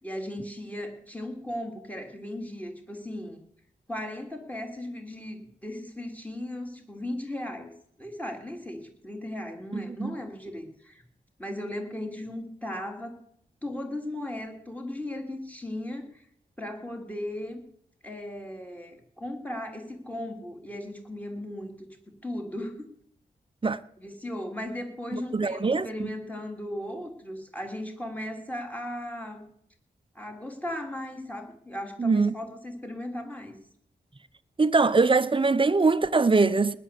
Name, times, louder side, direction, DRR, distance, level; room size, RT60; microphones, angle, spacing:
voice 1, 0.0-3.4 3.9-7.7 8.0-11.0 11.4-13.2 13.6-16.2 16.6-17.6 18.0-21.9 22.2-22.9 24.0-29.5 30.1-33.5, left 1 dB, 10° left, 3.3 m, -37 dB
voice 2, 9.7-10.1 23.6-23.8 25.1-26.1 32.0-32.3 34.6-36.7, right 4 dB, 30° right, 0.8 m, -23 dB
19.5 x 6.8 x 7.7 m
wide cardioid pair, 85°, 18 cm